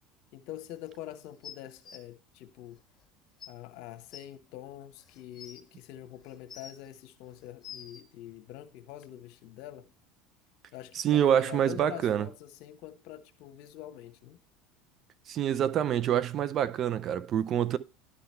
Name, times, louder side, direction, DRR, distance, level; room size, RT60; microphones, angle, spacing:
voice 1, 0.3-2.8 3.5-9.9 10.7-14.4, left 13 dB, 70° left, 1.0 m, -45 dB
sound 1, 1.4-2.0 3.0-3.1 3.4-3.5 4.1-4.2 5.0-5.6 6.3-6.9 7.4-8.0 9.0-9.1, left 8 dB, 35° left, 1.6 m, -46 dB
voice 2, 10.9-12.3 15.3-17.8, right 10 dB, 45° right, 0.5 m, -26 dB
11.5 x 3.9 x 4.4 m
supercardioid pair, 95°, 0 cm